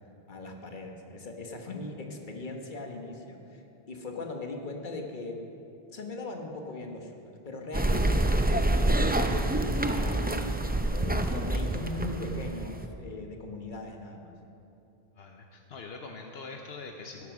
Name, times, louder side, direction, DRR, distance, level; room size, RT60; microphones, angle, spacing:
voice 1, 0.3-3.6 3.9-5.4 5.9-9.1 9.6-14.3, left 2 dB, 50° left, 2 dB, 1.5 m, -39 dB
sound 1, 7.7-12.9, right 1 dB, 15° right, 0.4 m, -27 dB
voice 2, 15.2-17.3, left 4 dB, 80° left, 2 dB, 1.1 m, -43 dB
16.0 x 8.5 x 6.1 m, 2.8 s
omnidirectional pair, 1.0 m